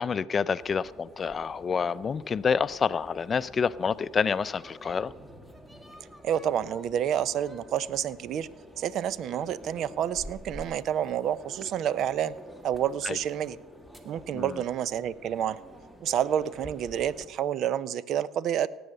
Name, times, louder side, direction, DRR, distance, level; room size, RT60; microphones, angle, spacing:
voice 1, 0.0-5.1 13.0-13.2 14.3-14.5, left 6 dB, 35° left, 0.5 m, -28 dB
sound 1, 0.6-17.3, equal, 15° right, 2.1 m, -48 dB
voice 2, 6.2-8.5 8.8-12.4 12.6-13.6 14.0-15.6 16.0-18.7, right 10 dB, 60° right, 0.5 m, -29 dB
17.5 x 7.8 x 6.7 m
supercardioid pair, 75°, 0 cm